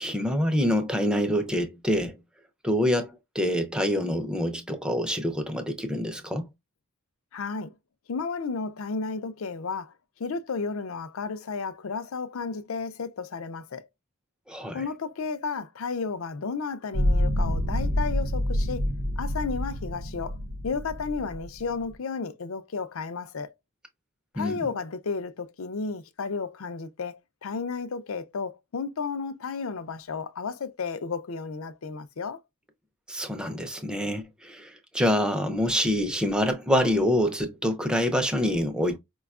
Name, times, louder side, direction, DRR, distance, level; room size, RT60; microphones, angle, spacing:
voice 1, 0.0-2.2 2.6-6.5 14.5-14.8 24.4-24.7 33.1-39.0, equal, 5° right, 0.5 m, -26 dB
voice 2, 7.3-7.7 8.1-9.9 10.2-13.9 14.7-18.9 19.2-20.4 20.6-23.5 24.3-32.4, left 4 dB, 65° left, 0.5 m, -33 dB
sound 1, 16.9-21.8, equal, 90° right, 0.9 m, -27 dB
4.9 x 2.3 x 2.3 m
head